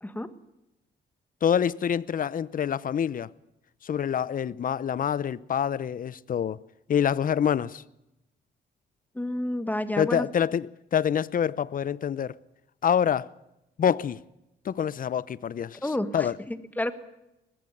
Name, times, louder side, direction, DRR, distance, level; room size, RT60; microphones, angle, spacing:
voice 1, 1.4-3.3 3.8-6.6 6.9-7.8 10.0-12.4 12.8-13.3 13.8-14.2 14.6-16.4, left 8 dB, 50° left, 0.7 m, -26 dB
voice 2, 9.1-10.3 15.8-16.9, left 1 dB, 10° left, 1.6 m, -30 dB
20.0 x 15.5 x 9.2 m
cardioid pair, 100°, 18 cm